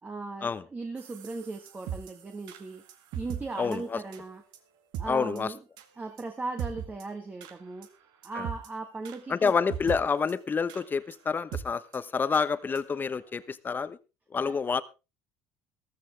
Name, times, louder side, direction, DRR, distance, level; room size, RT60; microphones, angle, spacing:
voice 1, 0.0-2.8 3.1-4.4 5.0-5.6 6.0-7.9 8.2-9.5 14.5-14.6, right 3 dB, 20° right, 5 dB, 1.6 m, -38 dB
sound 1, 1.0-3.4 3.7-3.8 4.1-4.2 4.5-4.6 4.9-5.1 5.4-5.5 5.8-5.9 6.2-6.3 6.6-7.0 7.4-7.5 7.8-7.9 8.2-8.7 9.0-9.2 9.5-10.0 10.3-10.4 10.7-10.8 11.1-11.2 11.5-11.6 11.9-12.0 12.3-12.5 12.8-12.9 13.2-13.3, right 9 dB, 70° right, 1.9 m, -38 dB
voice 2, 3.6-4.0 5.1-5.5 8.4-8.5 9.3-14.0 14.3-14.8, left 5 dB, 25° left, 15 dB, 1.0 m, -28 dB
14.0 x 14.0 x 3.5 m, 0.29 s
supercardioid pair, 100°, 7 cm